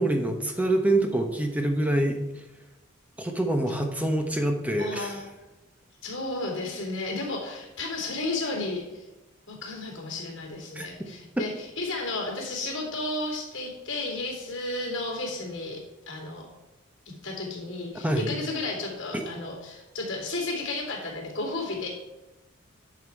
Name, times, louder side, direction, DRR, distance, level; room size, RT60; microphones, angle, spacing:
voice 1, 0.0-2.2 3.2-5.2 10.7-10.9 18.0-18.3, right 1 dB, 5° right, 4 dB, 0.9 m, -25 dB
voice 2, 4.8-5.3 6.0-9.1 9.5-15.8 16.1-16.5 17.2-21.9, left 2 dB, 60° left, -2 dB, 3.1 m, -33 dB
9.7 x 5.9 x 4.6 m, 1.0 s
head